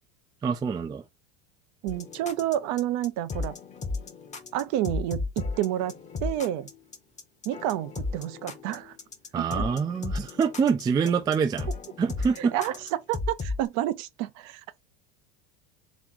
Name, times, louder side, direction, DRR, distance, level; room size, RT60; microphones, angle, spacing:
voice 1, 0.4-1.0 9.3-11.7 12.0-12.5, right 6 dB, 10° right, 0.3 m, -25 dB
voice 2, 1.8-3.5 4.5-5.9 6.2-6.7 7.5-9.0 9.4-9.7 12.4-14.8, right 13 dB, 60° right, 0.7 m, -29 dB
sound 1, 1.9-13.7, left 3 dB, 20° left, 0.8 m, -34 dB
3.4 x 3.0 x 3.8 m
supercardioid pair, 120°, 36 cm